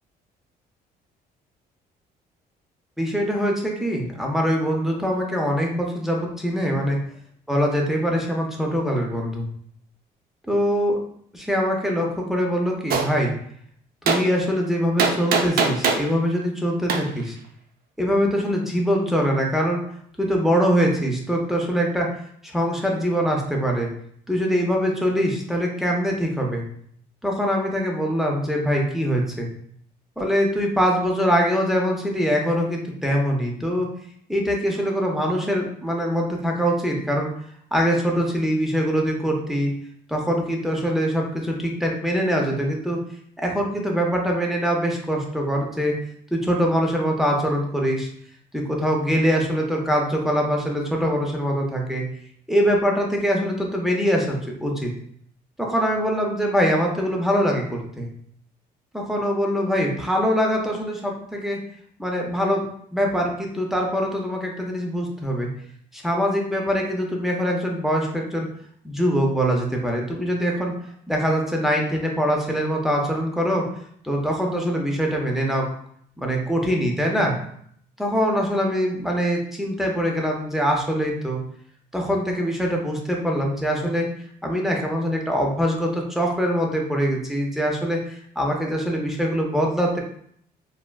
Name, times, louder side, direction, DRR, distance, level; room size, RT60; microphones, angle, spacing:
voice 1, 3.0-7.0 7.5-9.5 10.5-11.0 11.3-13.3 14.0-17.3 18.0-19.8 20.2-22.1 22.4-23.9 24.3-26.6 27.2-29.5 30.2-33.9 34.3-37.3 37.7-39.7 40.1-43.0 43.4-46.0 46.3-48.1 48.5-52.0 52.5-54.9 55.6-58.1 58.9-61.6 62.0-62.6 62.9-65.5 65.9-68.5 68.8-70.7 71.1-73.6 74.0-75.7 76.2-77.3 78.0-81.4 81.9-84.1 84.4-90.0, equal, ahead, -1 dB, 0.5 m, -23 dB
Gunshot gunfire, 12.9-13.1 14.1-14.2 15.0-16.1 16.9-17.0, right 5 dB, 60° right, 0.4 m, -20 dB
3.3 x 2.0 x 2.3 m, 0.64 s
cardioid pair, 110°, 17 cm